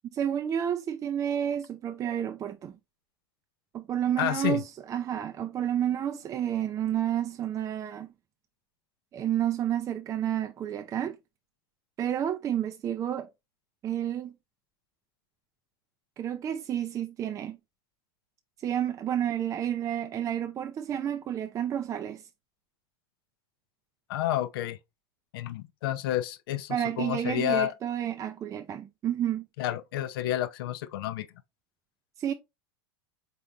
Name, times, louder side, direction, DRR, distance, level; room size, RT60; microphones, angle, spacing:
voice 1, 0.1-2.8 3.7-8.1 9.1-11.2 12.0-13.3 13.8-14.3 16.2-17.6 18.6-22.3 26.7-29.5 32.2-32.3, right 10 dB, 25° right, 0.4 m, -30 dB
voice 2, 4.2-4.6 24.1-24.8 25.3-27.7 29.6-31.3, left 13 dB, 75° left, 0.5 m, -30 dB
4.4 x 4.0 x 2.3 m
hypercardioid pair, 110°, 12 cm